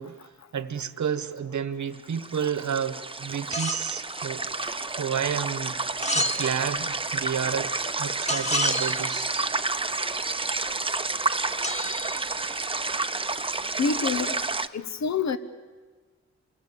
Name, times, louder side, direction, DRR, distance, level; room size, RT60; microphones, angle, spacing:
voice 1, 0.0-5.8 6.1-7.7 8.0-9.3 12.4-12.5, right 7 dB, 80° right, 1.3 m, -31 dB
sound 1, 1.9-14.7, right 3 dB, 20° right, 0.7 m, -30 dB
sound 2, 3.5-3.9 6.0-7.0 8.3-9.3 11.6-12.8, left 1 dB, 25° left, 2.0 m, -30 dB
voice 2, 13.8-14.4 14.7-15.4, left 5 dB, 70° left, 1.1 m, -27 dB
28.0 x 21.5 x 8.6 m
wide cardioid pair, 120°, 29 cm